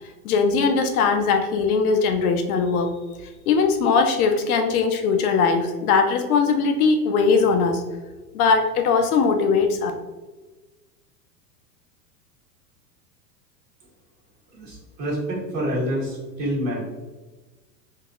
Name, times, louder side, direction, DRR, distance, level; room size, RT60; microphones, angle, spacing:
voice 1, 0.2-2.9 3.5-7.8 8.3-9.9, left 5 dB, 65° left, 5 dB, 0.5 m, -20 dB
voice 2, 14.5-16.8, equal, 35° right, -5 dB, 1.5 m, -27 dB
2.9 x 2.6 x 2.3 m, 1.2 s
hypercardioid pair, 95°, 49 cm